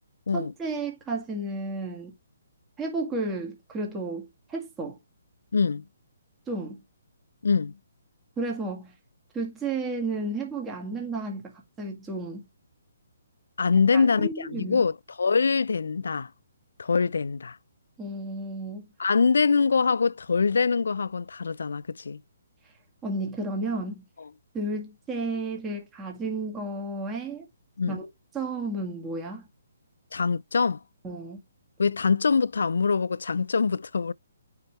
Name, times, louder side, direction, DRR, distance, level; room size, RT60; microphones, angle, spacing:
voice 1, 0.3-2.1 2.8-5.0 6.5-6.8 8.4-8.9 9.3-11.5 11.8-12.4 13.9-14.8 18.0-18.8 23.0-24.0 24.5-27.5 27.9-28.1 28.3-29.5 31.0-31.4, right 2 dB, 15° right, 1.9 m, -32 dB
voice 2, 5.5-5.8 7.4-7.7 13.6-16.3 16.8-17.6 19.0-22.2 27.8-28.0 30.1-30.8 31.8-34.1, left 5 dB, 75° left, 0.3 m, -24 dB
9.0 x 3.4 x 3.2 m
hypercardioid pair, 145°, 0 cm